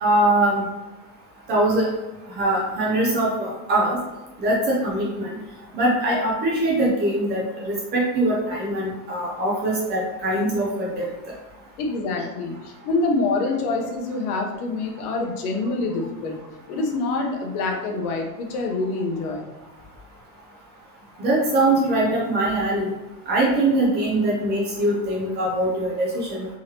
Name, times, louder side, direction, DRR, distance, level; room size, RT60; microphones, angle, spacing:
voice 1, 0.0-0.7 1.5-1.9 2.3-4.0 4.4-5.3 5.7-11.1 21.2-22.9 23.3-26.5, right 1 dB, 25° right, -4 dB, 0.5 m, -22 dB
voice 2, 11.8-16.4 16.7-19.5, left 3 dB, 75° left, 1 dB, 0.9 m, -26 dB
3.8 x 2.9 x 2.9 m, 1.1 s
supercardioid pair, 160°, 46 cm